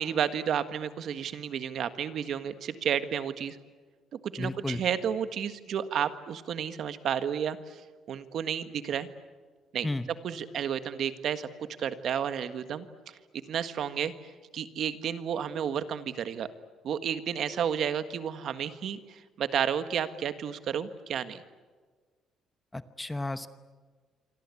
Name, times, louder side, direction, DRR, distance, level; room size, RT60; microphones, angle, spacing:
voice 1, 0.0-3.6 4.2-7.8 8.1-9.1 9.7-9.9 10.2-12.8 13.5-14.1 14.5-16.5 16.8-21.4, right 8 dB, 55° right, 10 dB, 1.6 m, -31 dB
voice 2, 4.4-4.8 9.8-10.1 22.7-23.5, left 2 dB, 10° left, 11 dB, 0.9 m, -33 dB
27.0 x 24.5 x 8.5 m, 1.4 s
cardioid pair, 155°, 0 cm